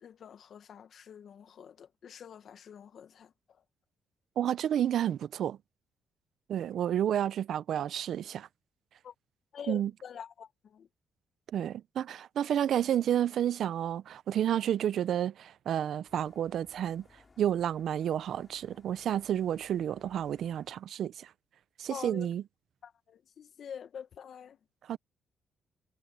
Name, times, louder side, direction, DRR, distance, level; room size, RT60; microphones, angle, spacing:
voice 1, 0.0-3.3 9.0-9.1 9.5-10.9 21.9-22.3 22.8-24.6, left 8 dB, 60° left, 1.3 m, -46 dB
voice 2, 4.4-5.6 6.5-8.5 9.7-9.9 11.5-17.1 17.4-21.3 21.8-22.4 24.9-25.0, right 10 dB, 70° right, 0.6 m, -30 dB
sound 1, 16.1-20.8, left 4 dB, 30° left, 4.8 m, -62 dB
cardioid pair, 90°, 0 cm